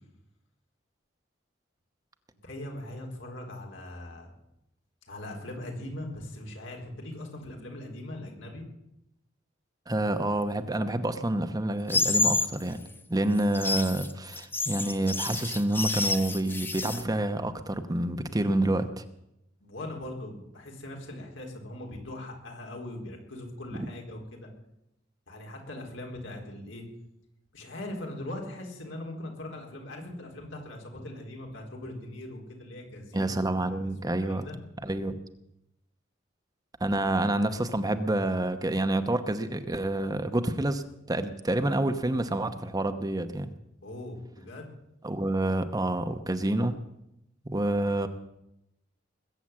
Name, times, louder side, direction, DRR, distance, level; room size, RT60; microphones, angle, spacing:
voice 1, 2.4-4.3 5.1-8.6 19.6-24.5 25.3-26.9 27.5-33.4 33.7-33.9 34.2-34.6 43.8-44.7, left 1 dB, 80° left, 1 dB, 4.2 m, -40 dB
voice 2, 9.9-12.8 13.1-19.0 23.7-23.9 33.1-34.5 34.8-35.2 36.8-43.5 45.0-46.8 47.4-48.1, right 1 dB, 20° right, 9 dB, 0.9 m, -28 dB
sound 1, 11.9-12.5 13.4-17.0, left 3 dB, 10° left, 0.8 m, -28 dB
20.5 x 8.0 x 8.6 m, 0.84 s
head